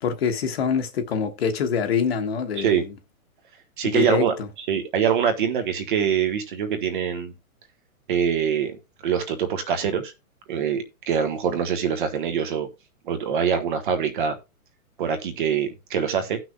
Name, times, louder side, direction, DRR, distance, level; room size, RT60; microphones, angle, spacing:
voice 1, 0.0-2.9 3.8-4.2, left 6 dB, 45° left, 1.3 m, -25 dB
voice 2, 3.8-4.4 4.7-7.3 8.1-8.8 9.0-10.1 10.5-12.7 13.0-14.4 15.0-16.4, right 7 dB, 35° right, 1.3 m, -24 dB
17.0 x 6.1 x 2.3 m
hypercardioid pair, 175°, 43 cm